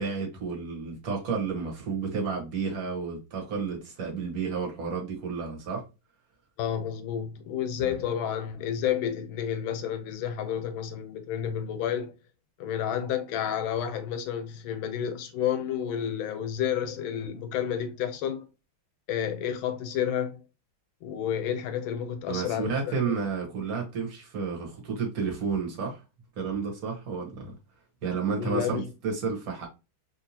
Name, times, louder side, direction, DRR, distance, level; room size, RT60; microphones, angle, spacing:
voice 1, 0.0-5.8 7.8-8.0 22.3-26.0 26.4-27.5 28.0-29.7, right 5 dB, 50° right, 1.4 m, -31 dB
voice 2, 6.6-12.1 12.6-18.5 19.1-20.4 21.0-23.1 28.4-28.9, left 9 dB, 80° left, 1.4 m, -30 dB
3.3 x 2.7 x 2.7 m
omnidirectional pair, 2.2 m